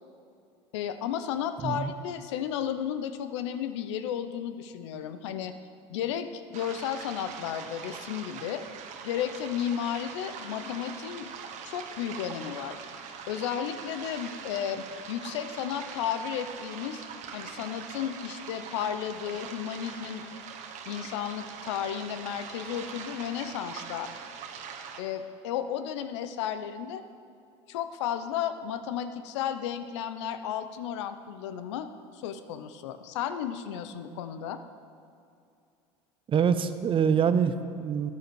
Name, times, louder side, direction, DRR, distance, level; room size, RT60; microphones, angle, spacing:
voice 1, 0.7-5.5 5.9-8.6 9.0-11.3 11.7-12.8 13.3-17.0 17.3-20.3 20.9-24.1 25.0-27.0 27.7-31.9 32.1-34.6, left 9 dB, 80° left, 11 dB, 0.8 m, -33 dB
sound 1, 6.5-25.0, right 6 dB, 55° right, 1.2 m, -42 dB
voice 2, 36.3-38.1, right 7 dB, 35° right, 12 dB, 0.7 m, -25 dB
13.5 x 9.6 x 4.7 m, 2.5 s
hypercardioid pair, 85°, 15 cm